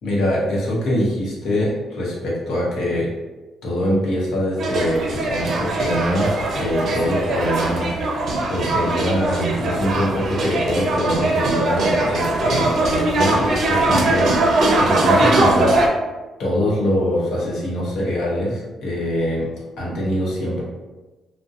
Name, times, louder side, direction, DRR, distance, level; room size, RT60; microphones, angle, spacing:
voice 1, 0.0-3.1 3.6-7.9 8.5-14.4 14.7-15.8 16.4-19.5 19.8-20.6, equal, 75° left, -4 dB, 0.8 m, -23 dB
sound 1, 4.6-15.9, right 2 dB, 60° right, 0.4 m, -20 dB
2.6 x 2.1 x 2.4 m, 1.2 s
cardioid pair, 90°, 0 cm